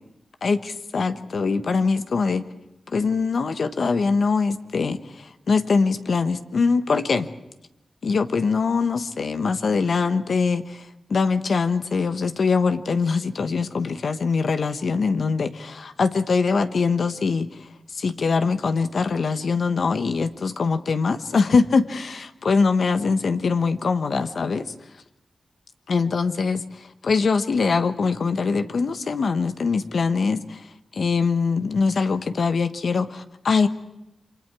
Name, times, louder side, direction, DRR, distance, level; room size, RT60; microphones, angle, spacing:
voice 1, 0.4-2.5 2.9-7.3 8.0-24.7 25.9-30.7 30.9-33.7, left 4 dB, 70° left, 9 dB, 1.2 m, -23 dB
29.0 x 24.0 x 4.8 m, 0.91 s
cardioid pair, 60°, 0 cm